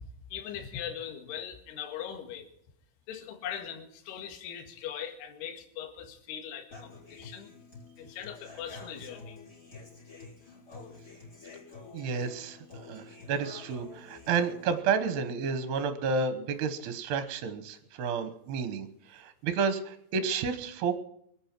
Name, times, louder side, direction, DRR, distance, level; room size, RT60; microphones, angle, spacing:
voice 1, 0.0-2.5 3.1-7.5 8.0-9.4, left 9 dB, 60° left, 3 dB, 3.7 m, -40 dB
Human voice / Acoustic guitar, 6.7-14.7, left 4 dB, 20° left, 4.4 m, -49 dB
voice 2, 11.9-21.0, right 5 dB, 70° right, 9 dB, 2.8 m, -31 dB
24.0 x 8.5 x 6.0 m, 0.74 s
omnidirectional pair, 5.6 m